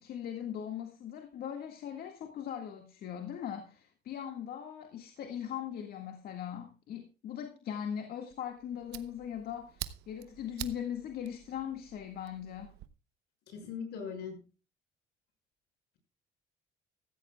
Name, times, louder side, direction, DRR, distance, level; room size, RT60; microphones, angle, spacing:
voice 1, 0.0-12.8, left 9 dB, 65° left, 1.9 m, -40 dB
Fire, 8.3-12.9, right 14 dB, 85° right, 0.9 m, -47 dB
voice 2, 13.5-14.5, left 6 dB, 80° left, 6.2 m, -40 dB
15.0 x 15.0 x 2.3 m
cardioid pair, 110°, 17 cm